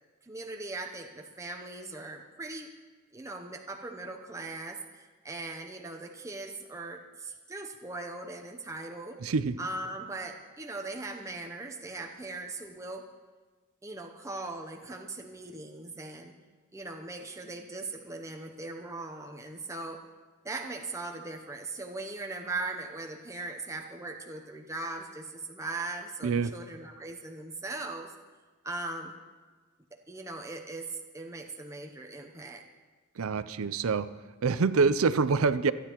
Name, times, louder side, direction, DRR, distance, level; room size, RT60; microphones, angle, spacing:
voice 1, 0.2-2.7 3.1-9.2 9.6-13.1 13.8-16.3 16.7-20.0 20.4-28.1 28.6-29.1 29.9-32.6, right 2 dB, 15° right, 2 dB, 0.7 m, -39 dB
voice 2, 9.2-9.6 26.2-26.5 33.2-34.1 34.4-35.7, right 4 dB, 65° right, 14 dB, 0.5 m, -26 dB
26.0 x 10.0 x 3.0 m, 1.4 s
head